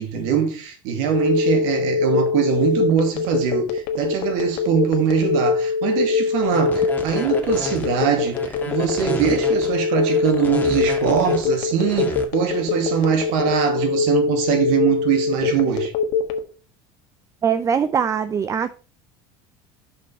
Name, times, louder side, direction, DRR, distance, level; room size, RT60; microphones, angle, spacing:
voice 1, 0.0-15.9, right 8 dB, 75° right, 2.2 m, -22 dB
Telephone, 1.1-16.4, left 5 dB, 75° left, 1.4 m, -22 dB
sound 1, 6.4-12.2, left 2 dB, 15° left, 1.8 m, -32 dB
voice 2, 17.4-18.7, right 7 dB, 25° right, 0.5 m, -21 dB
6.6 x 5.3 x 5.5 m
supercardioid pair, 110°, 12 cm